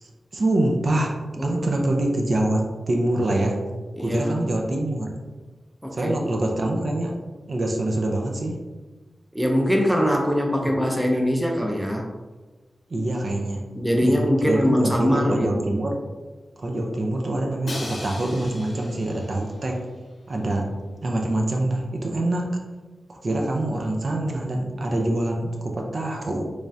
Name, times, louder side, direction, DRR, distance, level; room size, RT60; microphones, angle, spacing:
voice 1, 0.0-1.1 1.4-3.6 4.0-5.2 5.9-7.1 7.5-8.6 10.6-10.7 12.9-13.7 14.0-16.0 16.6-19.9 20.3-20.7 21.0-22.6 23.1-26.5, right 1 dB, 55° right, 1 dB, 0.5 m, -25 dB
voice 2, 1.4-1.8 3.9-4.4 5.8-6.1 9.3-12.1 13.7-15.5, equal, ahead, 0 dB, 0.5 m, -22 dB
Crash cymbal, 17.7-19.7, left 1 dB, 70° left, 0.7 m, -37 dB
3.5 x 3.2 x 2.6 m, 1.3 s
wide cardioid pair, 125°, 0 cm